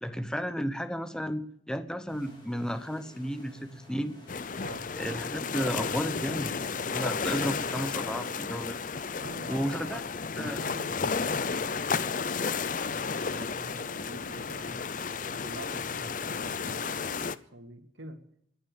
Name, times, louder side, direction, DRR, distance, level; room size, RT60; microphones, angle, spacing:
voice 1, 0.0-4.1 5.0-8.8 9.5-10.0 10.4-10.6, equal, 5° left, 10 dB, 0.9 m, -33 dB
sound 1, 2.1-8.6, equal, 25° left, 4.6 m, -51 dB
sound 2, 4.3-17.4, left 5 dB, 45° left, 0.6 m, -33 dB
voice 2, 9.1-10.0 10.4-14.9 15.3-18.2, right 1 dB, 80° right, 6 dB, 2.3 m, -46 dB
20.0 x 9.7 x 6.7 m, 0.67 s
head